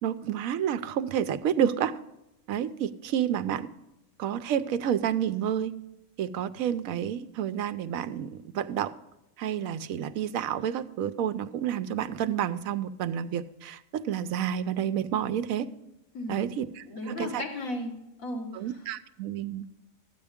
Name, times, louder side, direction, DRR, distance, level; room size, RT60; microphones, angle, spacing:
voice 1, 0.0-2.0 2.5-3.7 4.2-5.7 6.2-8.9 9.4-15.7 16.3-17.4 18.5-19.7, right 9 dB, 85° right, 13 dB, 1.1 m, -30 dB
voice 2, 16.1-16.5 16.9-18.8, left 1 dB, 85° left, 1 dB, 2.1 m, -35 dB
13.0 x 8.9 x 3.5 m, 0.92 s
omnidirectional pair, 1.4 m